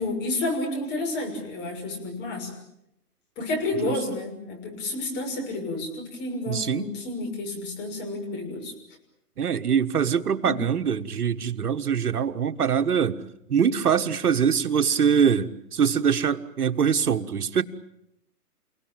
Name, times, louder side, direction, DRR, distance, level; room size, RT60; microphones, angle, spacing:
voice 1, 0.0-2.5 3.4-8.7 10.4-10.6, left 2 dB, 20° left, 6.4 m, -30 dB
voice 2, 6.5-6.9 9.4-13.2 13.5-17.6, right 7 dB, 70° right, 1.7 m, -23 dB
29.5 x 17.5 x 9.1 m
hypercardioid pair, 145°, 47 cm